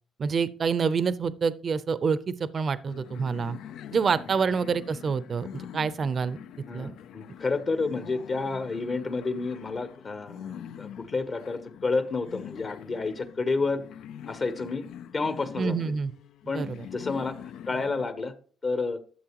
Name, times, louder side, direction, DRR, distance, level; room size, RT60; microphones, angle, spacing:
voice 1, 0.2-3.6 3.9-6.4 6.7-6.9 15.6-16.1 16.5-16.8, right 5 dB, 45° right, 16 dB, 0.6 m, -27 dB
sound 1, 2.9-18.1, left 9 dB, 80° left, 0.4 m, -44 dB
voice 2, 6.7-13.8 14.2-14.8 15.1-16.0 16.5-18.3 18.6-19.0, left 3 dB, 40° left, 10 dB, 1.0 m, -30 dB
12.5 x 7.1 x 3.0 m, 0.42 s
cardioid pair, 90°, 0 cm